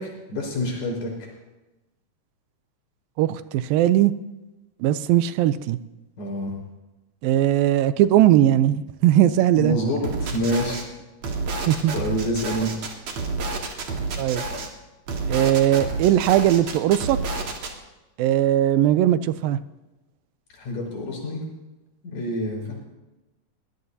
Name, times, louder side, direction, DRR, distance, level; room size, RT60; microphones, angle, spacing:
voice 1, 0.0-1.3 6.2-6.5 9.6-10.9 11.9-12.7 20.5-21.4 22.0-22.7, equal, 65° left, -2 dB, 6.1 m, -27 dB
voice 2, 3.2-4.1 4.8-5.8 7.2-9.8 11.7-11.9 14.2-14.4 15.3-17.2 18.2-19.6, right 12 dB, 85° right, 13 dB, 2.4 m, -19 dB
sound 1, 10.0-10.8 11.2-14.7 15.1-17.7, right 3 dB, 55° right, 2.6 m, -29 dB
22.5 x 18.5 x 2.8 m, 1.0 s
omnidirectional pair, 4.1 m